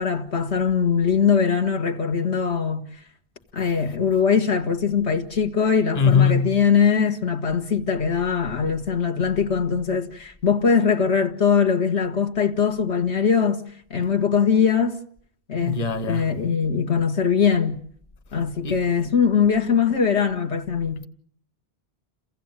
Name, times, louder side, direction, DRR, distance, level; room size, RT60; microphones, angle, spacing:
voice 1, 0.0-2.9 3.5-13.6 13.9-15.0 15.5-17.8 18.3-21.1, left 6 dB, 90° left, 1.9 m, -21 dB
voice 2, 5.9-6.6 15.6-16.3 18.6-18.8, left 6 dB, 40° left, 1.2 m, -21 dB
29.0 x 16.0 x 8.9 m
omnidirectional pair, 1.1 m